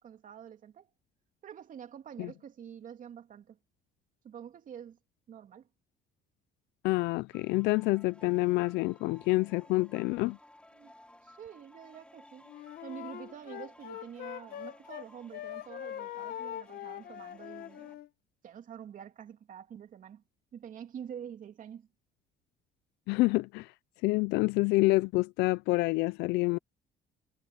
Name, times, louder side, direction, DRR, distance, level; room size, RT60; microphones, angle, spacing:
voice 1, 0.0-0.9 1.4-3.6 4.2-5.0 5.3-5.7 10.7-10.9 11.2-12.5 12.8-18.0 18.4-20.2 20.5-21.9, right 8 dB, 50° right, 2.7 m, -47 dB
voice 2, 6.8-10.4 23.1-23.7 24.0-26.6, left 22 dB, 90° left, 0.4 m, -27 dB
sound 1, 7.3-17.9, left 1 dB, 5° left, 4.3 m, -58 dB
Wind instrument woodwind instrument, 12.5-15.1 15.3-18.1, left 11 dB, 65° left, 1.4 m, -42 dB
cardioid pair, 110°, 17 cm